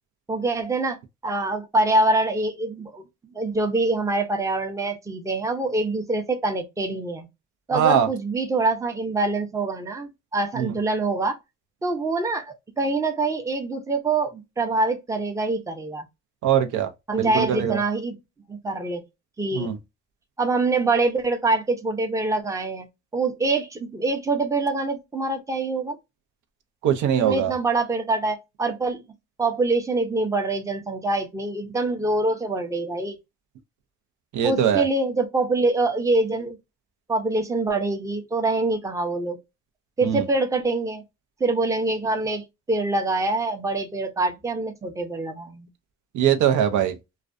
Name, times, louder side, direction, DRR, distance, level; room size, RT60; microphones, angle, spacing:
voice 1, 0.3-1.0 1.2-3.0 3.3-7.3 7.7-11.4 11.8-16.0 17.1-18.2 18.5-19.0 19.4-19.7 20.4-22.9 23.1-26.0 27.2-29.0 29.4-33.2 34.4-36.6 37.1-39.4 40.0-41.0 41.4-45.7, right 2 dB, 10° right, 0.5 m, -25 dB
voice 2, 7.7-8.1 10.6-10.7 16.4-16.9 17.2-17.8 19.5-19.8 26.8-27.5 34.3-34.8 40.0-40.2 46.1-47.0, right 9 dB, 75° right, 0.5 m, -21 dB
2.4 x 2.2 x 2.3 m
cardioid pair, 90°, 30 cm